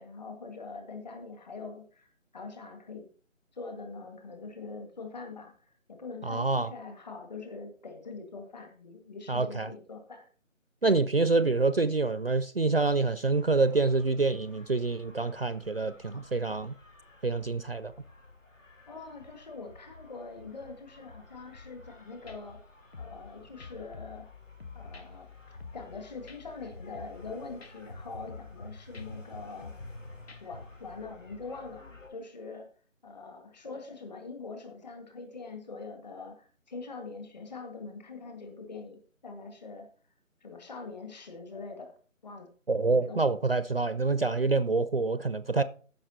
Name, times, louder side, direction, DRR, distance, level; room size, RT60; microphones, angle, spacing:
voice 1, 0.0-3.1 3.5-10.3 18.9-22.6 23.0-24.3 24.7-25.3 25.7-29.7 30.4-32.7 33.0-39.9 40.4-42.0 42.2-42.5 42.9-43.5, left 4 dB, 30° left, 1.9 m, -43 dB
voice 2, 6.2-6.7 9.3-9.7 10.8-16.7 17.2-17.9 42.7-45.6, right 3 dB, 45° right, 0.5 m, -26 dB
sound 1, 13.3-32.1, left 2 dB, 65° left, 3.2 m, -50 dB
sound 2, 21.9-22.0 22.3-22.4 22.9-23.3 23.6-24.3 24.6-25.1 25.6-26.0 26.3-26.4 26.9-27.3 27.6-27.7 28.3-28.6 28.9-29.1 29.6-30.0 30.3-30.4, left 5 dB, 50° left, 1.4 m, -47 dB
14.0 x 5.7 x 4.2 m
figure-of-eight pair, 155°, 40 cm